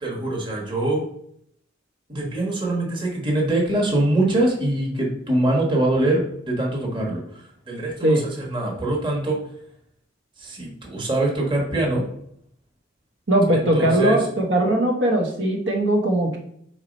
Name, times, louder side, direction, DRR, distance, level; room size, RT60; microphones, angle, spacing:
voice 1, 0.0-1.0 2.1-9.4 10.4-12.0 13.5-14.2, right 1 dB, 25° right, -1 dB, 1.4 m, -23 dB
voice 2, 13.3-16.4, right 1 dB, 65° right, -1 dB, 1.0 m, -20 dB
4.7 x 4.4 x 5.1 m, 0.69 s
head